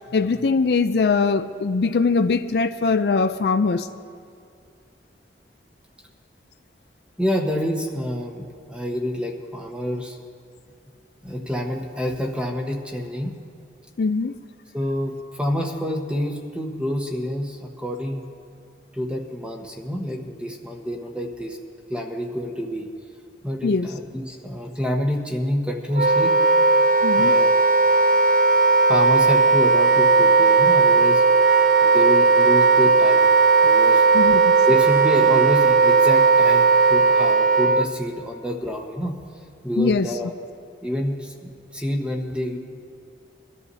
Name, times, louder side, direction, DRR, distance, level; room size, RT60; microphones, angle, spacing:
voice 1, 0.1-3.9 14.0-14.3 23.6-23.9 27.0-27.3 34.1-34.4 39.8-40.1, left 4 dB, 65° left, 10 dB, 0.4 m, -21 dB
voice 2, 7.2-10.2 11.2-13.4 14.7-18.3 18.9-21.6 21.9-22.9 23.4-26.3 27.2-27.7 28.9-31.2 31.8-33.3 33.6-34.1 34.7-39.1 39.6-40.3 40.8-42.6, equal, 5° right, 1 dB, 1.2 m, -27 dB
Wind instrument woodwind instrument, 25.9-37.9, right 4 dB, 50° right, 0.5 m, -16 dB
23.0 x 13.0 x 2.8 m, 2.4 s
head